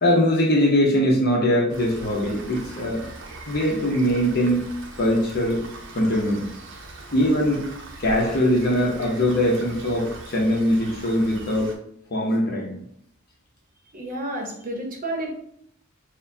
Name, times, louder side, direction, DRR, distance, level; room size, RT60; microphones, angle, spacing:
voice 1, 0.0-3.1 3.5-4.6 5.0-5.6 5.9-6.4 7.1-7.7 8.0-11.7 12.1-12.8, equal, 50° left, -2 dB, 0.8 m, -21 dB
Rain, 1.7-11.8, right 2 dB, 65° right, 0.7 m, -41 dB
voice 2, 13.9-15.3, right 1 dB, 45° right, 1 dB, 0.9 m, -30 dB
6.5 x 2.2 x 2.7 m, 0.68 s
head